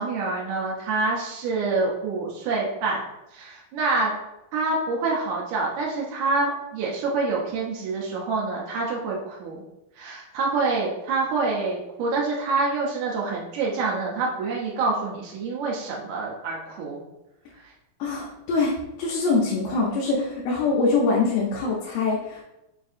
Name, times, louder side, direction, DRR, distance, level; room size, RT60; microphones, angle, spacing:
voice 1, 0.0-3.0 3.3-4.1 4.5-9.6 10.0-17.0 17.6-17.7, right 3 dB, 85° right, -3 dB, 1.6 m, -26 dB
voice 2, 18.0-22.4, left 3 dB, 75° left, -4 dB, 2.3 m, -24 dB
7.2 x 2.7 x 2.5 m, 0.90 s
omnidirectional pair, 4.2 m